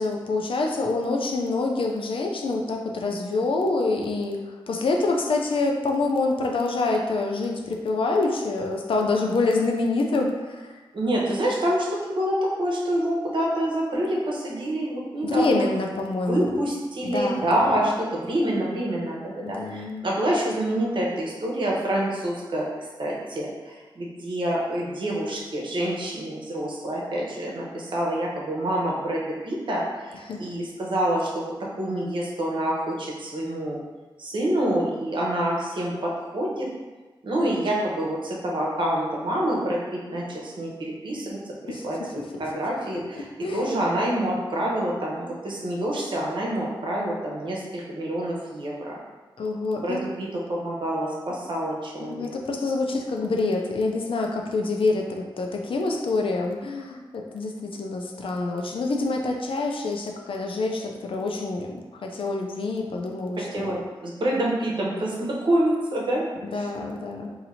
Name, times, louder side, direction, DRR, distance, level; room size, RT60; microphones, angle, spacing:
voice 1, 0.0-4.4 4.7-10.8 15.2-16.6 17.0-17.8 19.4-20.1 30.3-30.4 41.7-41.8 43.4-43.7 49.4-50.0 52.0-63.8 66.4-67.4, left 3 dB, 75° left, 1 dB, 0.5 m, -26 dB
voice 2, 10.9-15.7 16.3-33.8 34.2-36.7 37.2-43.3 43.5-49.0 49.8-52.3 63.5-66.7, right 1 dB, 65° right, -4 dB, 0.9 m, -27 dB
2.8 x 2.7 x 4.1 m, 1.3 s
wide cardioid pair, 75°, 9 cm